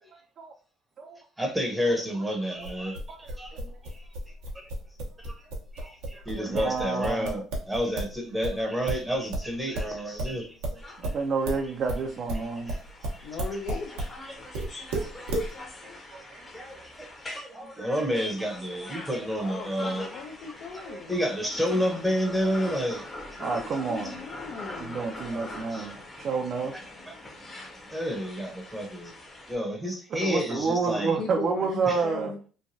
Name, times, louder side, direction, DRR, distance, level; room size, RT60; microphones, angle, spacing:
voice 1, 1.4-3.0 3.4-3.6 4.5-4.7 5.2-5.4 5.7-10.6 12.7-12.8 14.6-14.7 15.0-15.3 16.5-16.9 17.3-20.1 21.1-23.1 23.7-23.8 25.3-25.4 25.7-26.0 27.9-29.1 29.5-31.2 31.9-32.0, equal, 10° right, 0.7 m, -30 dB
sound 1, 2.6-8.2 8.4-14.2 14.5-15.5, right 1 dB, 90° right, 0.8 m, -32 dB
voice 2, 3.1-3.7 5.8-7.4 10.7-12.8 14.9-15.3 15.8-16.5 16.8-17.1 17.8-17.9 18.9-19.0 20.9-21.0 21.7-21.8 23.4-24.2 24.8-26.8 30.1-32.3, right 4 dB, 55° right, 0.4 m, -30 dB
sound 2, 10.8-29.5, left 2 dB, 30° left, 0.9 m, -43 dB
voice 3, 13.2-14.0 19.4-21.2 23.3-25.0 30.6-32.4, left 5 dB, 65° left, 0.5 m, -38 dB
3.1 x 2.2 x 2.6 m
supercardioid pair, 85°, 0 cm